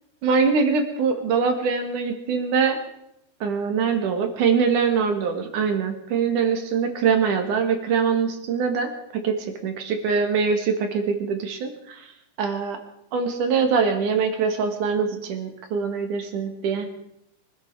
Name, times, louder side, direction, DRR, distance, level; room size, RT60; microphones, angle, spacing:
voice 1, 0.2-2.8 3.4-12.1 12.4-12.8 13.1-16.9, right 5 dB, 60° right, 6 dB, 3.2 m, -23 dB
24.0 x 12.0 x 4.9 m, 0.80 s
omnidirectional pair, 4.4 m